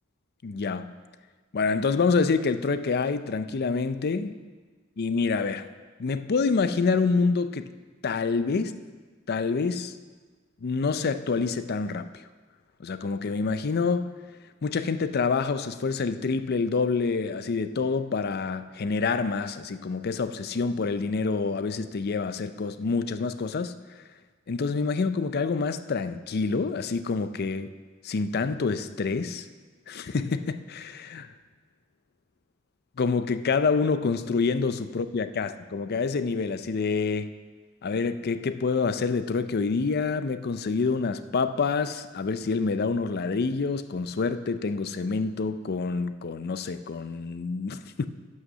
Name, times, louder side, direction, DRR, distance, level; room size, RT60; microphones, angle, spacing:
voice 1, 0.4-1.0 1.5-4.4 5.0-5.7 6.0-7.7 8.0-8.7 9.3-9.9 10.6-12.1 12.8-14.1 14.6-23.7 24.5-27.7 28.0-29.5 29.9-31.3 33.0-37.3 37.8-48.1, left 4 dB, 50° left, 11 dB, 0.5 m, -27 dB
11.0 x 6.4 x 6.1 m, 1.4 s
head